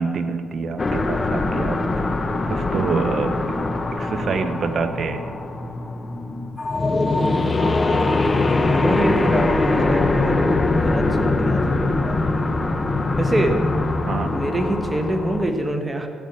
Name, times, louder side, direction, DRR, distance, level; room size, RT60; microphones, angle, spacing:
voice 1, 0.0-1.8 2.5-3.6 3.9-5.2 14.1-14.4, right 5 dB, 50° right, 7 dB, 1.1 m, -26 dB
sound 1, 0.8-15.5, left 2 dB, 30° left, 1.2 m, -22 dB
voice 2, 8.8-10.4 10.7-12.4 13.2-13.5 14.3-16.1, right 1 dB, 15° right, 5 dB, 1.4 m, -25 dB
14.0 x 8.6 x 8.8 m, 2.3 s
cardioid pair, 90°, 0 cm